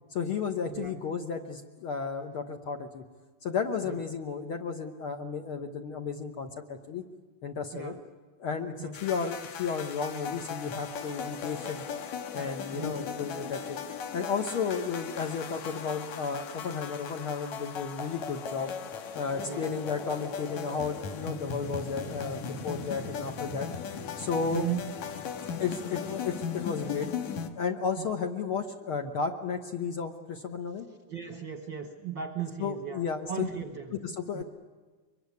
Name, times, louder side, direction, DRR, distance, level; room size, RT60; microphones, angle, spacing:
voice 1, 0.1-3.0 3.4-7.0 7.4-7.9 8.4-11.8 12.3-13.8 14.1-18.7 19.1-23.7 24.2-24.6 25.6-27.1 27.5-30.9 32.6-33.5 33.9-34.4, left 5 dB, 55° left, 4 dB, 1.6 m, -33 dB
voice 2, 0.6-1.0 3.8-4.0 7.7-8.0 8.8-9.0 12.7-13.1 19.4-19.7 24.5-24.9 28.0-28.1 31.1-33.9 34.3-34.4, right 8 dB, 55° right, 6 dB, 1.3 m, -37 dB
sound 1, 8.9-27.5, left 6 dB, 75° left, 2.6 m, -38 dB
24.0 x 22.5 x 9.6 m, 1.4 s
omnidirectional pair, 3.5 m